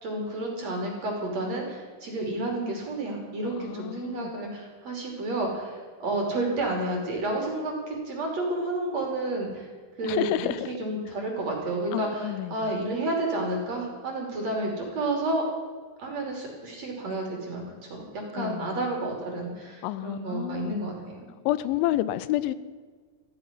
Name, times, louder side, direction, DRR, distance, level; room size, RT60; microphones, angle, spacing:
voice 1, 0.0-9.7 10.0-15.4 16.0-21.3, right 2 dB, 40° right, 0 dB, 3.5 m, -31 dB
voice 2, 3.6-4.3 10.0-10.7 11.9-12.6 18.4-18.8 19.8-20.8 21.5-22.5, left 14 dB, 85° left, 16 dB, 3.0 m, -29 dB
14.5 x 9.9 x 9.9 m, 1.5 s
omnidirectional pair, 5.4 m